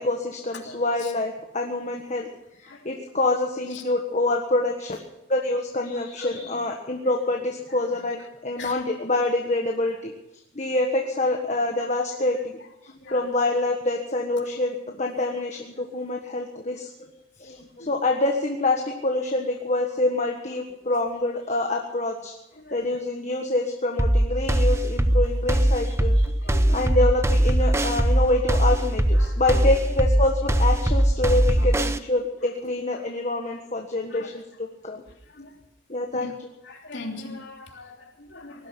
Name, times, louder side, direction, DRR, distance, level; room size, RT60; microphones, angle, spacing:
voice 1, 0.0-2.3 2.6-5.0 5.3-10.1 10.5-12.6 12.8-17.1 17.4-22.3 22.7-26.2 26.7-35.0 35.9-36.3, left 2 dB, 35° left, 2 dB, 1.5 m, -26 dB
voice 2, 0.5-1.1 2.7-3.1 3.7-3.9 6.2-6.8 7.7-8.0 8.6-8.8 11.8-11.9 12.9-13.3 17.8-17.9 22.6-22.8 25.8-27.0 27.6-27.8 29.1-29.7 31.6-31.7 32.9-33.0 34.1-34.3 35.3-35.5 36.1-36.3 36.6-38.7, left 2 dB, 65° left, 1 dB, 3.0 m, -42 dB
sound 1, 24.0-32.0, right 1 dB, 15° right, 0.7 m, -20 dB
19.0 x 12.0 x 6.1 m, 0.91 s
head